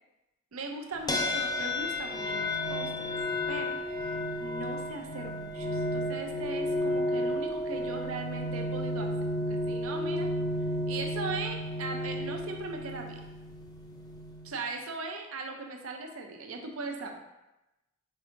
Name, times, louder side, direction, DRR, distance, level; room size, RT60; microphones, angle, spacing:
voice 1, 0.5-3.1 3.5-9.1 9.5-10.3 10.9-13.2 14.4-17.1, right 3 dB, 85° right, 3 dB, 0.6 m, -39 dB
sound 1, 1.1-14.6, left 1 dB, 20° left, 0.4 m, -32 dB
4.9 x 4.3 x 2.5 m, 0.96 s
head